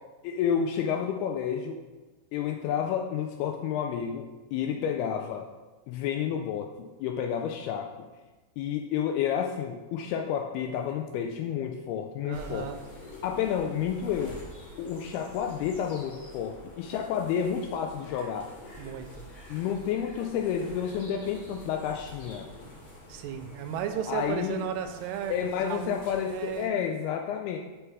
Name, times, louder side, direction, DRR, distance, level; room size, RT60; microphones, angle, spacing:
voice 1, 0.2-1.8 2.3-5.5 5.9-7.9 8.6-12.7 13.2-14.4 14.8-18.5 19.5-22.5 24.1-24.6 25.3-27.6, left 8 dB, 85° left, 4 dB, 2.3 m, -30 dB
voice 2, 12.2-12.8 18.8-19.3 23.1-26.0 26.3-26.8, right 8 dB, 85° right, 7 dB, 2.7 m, -35 dB
sound 1, 12.3-26.7, equal, 45° left, 2.9 m, -47 dB
6.5 x 6.2 x 4.7 m, 1.2 s
omnidirectional pair, 4.9 m